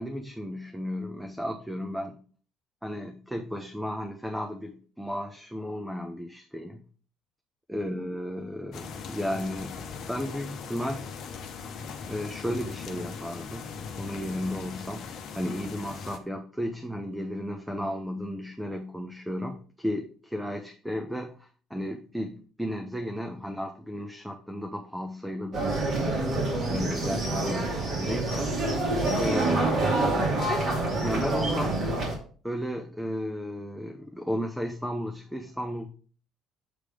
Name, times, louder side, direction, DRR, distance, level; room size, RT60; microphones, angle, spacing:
voice 1, 0.0-2.2 2.8-6.8 7.7-9.8 10.1-11.1 12.1-13.7 14.0-15.1 15.3-25.8 26.7-28.5 29.2-29.9 31.0-31.8 32.4-35.9, equal, 5° right, 4 dB, 0.8 m, -34 dB
sound 1, 8.7-16.2, left 5 dB, 60° left, 0.9 m, -39 dB
sound 2, 25.5-32.2, right 2 dB, 50° right, 2.4 m, -27 dB
7.7 x 3.3 x 5.0 m, 0.42 s
hypercardioid pair, 60°, 0 cm